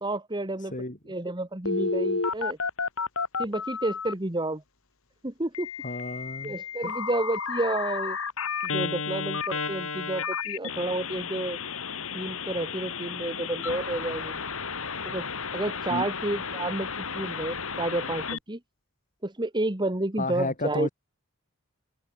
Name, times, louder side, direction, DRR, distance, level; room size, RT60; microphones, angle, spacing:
voice 1, 0.0-0.7 1.1-2.6 3.4-4.6 5.2-5.7 6.4-8.2 8.6-11.6 12.1-14.4 15.0-15.3 15.5-16.9 17.1-18.6 19.2-20.9, right 2 dB, 20° right, 1.5 m, -30 dB
voice 2, 0.6-1.0 5.8-6.6 6.8-6.9 15.9-16.0 20.2-20.9, left 2 dB, 35° left, 5.6 m, -32 dB
Telephone, 1.6-4.1 5.5-18.4, left 5 dB, 65° left, 3.5 m, -32 dB
open air
head